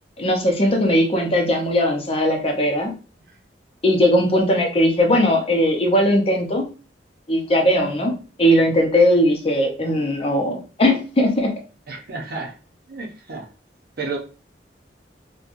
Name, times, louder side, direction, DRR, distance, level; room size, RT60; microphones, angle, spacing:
voice 1, 0.2-2.9 3.8-6.6 7.3-11.5, equal, 35° left, 2 dB, 0.6 m, -19 dB
voice 2, 11.9-12.5 12.9-13.5 14.0-14.2, right 3 dB, 60° right, 0 dB, 0.8 m, -31 dB
3.0 x 2.2 x 2.5 m, 0.35 s
head